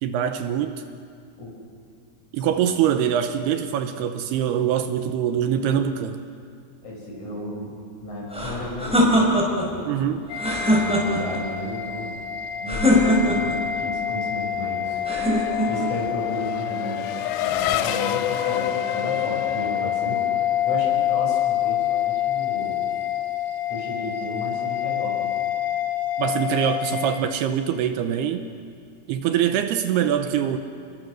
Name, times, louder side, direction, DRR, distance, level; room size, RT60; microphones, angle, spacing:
voice 1, 0.0-0.8 2.3-6.2 9.9-10.2 26.2-28.4 29.1-30.6, right 9 dB, 80° right, 8 dB, 2.7 m, -23 dB
voice 2, 6.8-9.9 10.4-12.2 12.6-15.0 15.7-20.2 20.6-22.8 23.7-25.3, left 1 dB, 45° left, -2 dB, 7.2 m, -33 dB
sound 1, 8.3-9.7 10.3-11.4 12.7-13.6 15.0-15.9, left 1 dB, ahead, 4.4 m, -21 dB
sound 2, 10.3-27.2, left 10 dB, 65° left, 2.3 m, -27 dB
Race car auto racing / Accelerating revving vroom, 14.7-20.7, left 12 dB, 90° left, 3.0 m, -29 dB
30.0 x 21.0 x 6.4 m, 2.3 s
omnidirectional pair, 5.0 m